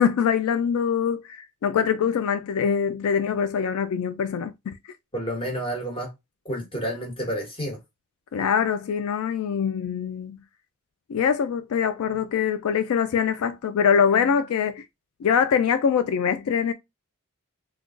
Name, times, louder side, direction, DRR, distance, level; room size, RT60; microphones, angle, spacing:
voice 1, 0.0-4.8 8.3-10.3 11.1-14.8 15.2-16.7, left 7 dB, 75° left, 0.3 m, -23 dB
voice 2, 5.1-6.1 6.4-7.8, equal, 25° left, 1.2 m, -30 dB
3.7 x 2.3 x 2.4 m
head